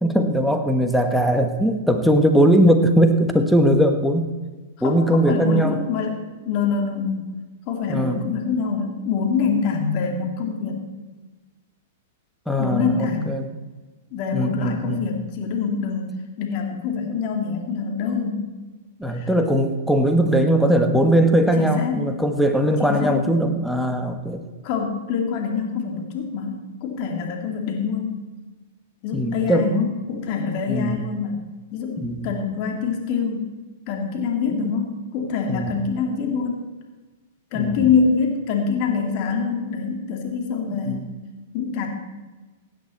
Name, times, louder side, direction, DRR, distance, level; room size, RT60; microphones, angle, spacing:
voice 1, 0.0-4.3 4.8-5.8 7.9-8.2 12.5-13.5 14.3-15.1 19.0-24.4 29.1-29.9 30.7-31.0 32.0-32.3 34.5-34.7 35.4-35.8 37.5-37.9 40.7-41.0, right 1 dB, ahead, 5 dB, 1.4 m, -20 dB
voice 2, 4.8-7.2 7.7-10.9 12.6-13.4 14.1-18.5 19.1-19.3 21.6-22.0 22.8-23.2 24.6-28.2 29.0-31.4 31.7-33.5 33.9-36.6 37.5-41.2 41.5-41.9, left 5 dB, 45° left, 2 dB, 2.7 m, -25 dB
16.5 x 10.5 x 4.4 m, 1.2 s
hypercardioid pair, 120°, 0 cm